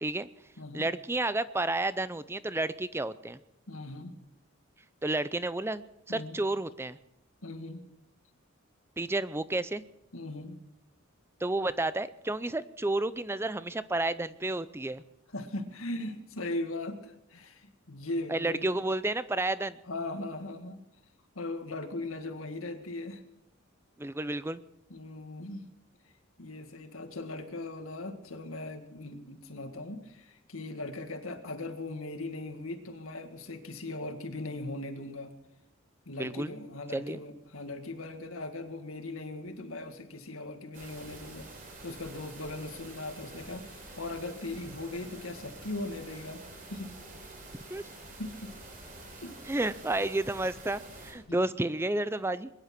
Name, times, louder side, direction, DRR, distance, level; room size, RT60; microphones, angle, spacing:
voice 1, 0.7-3.4 5.0-7.0 9.0-9.8 11.4-15.0 18.3-19.8 24.0-24.6 36.1-36.6 36.9-37.2 47.7-47.8 49.5-52.5, right 2 dB, 10° right, 15 dB, 0.5 m, -31 dB
voice 2, 3.7-4.2 6.1-6.4 7.4-7.8 10.1-10.6 15.3-18.7 19.9-20.8 21.4-23.2 24.9-25.7 26.4-35.3 36.1-46.4 46.7-46.9 48.2-48.5 49.2-49.4 51.3-51.4, left 2 dB, 85° left, 6 dB, 1.9 m, -39 dB
sound 1, 40.7-51.1, right 2 dB, 40° right, 4.6 m, -47 dB
21.5 x 11.0 x 6.0 m, 0.85 s
head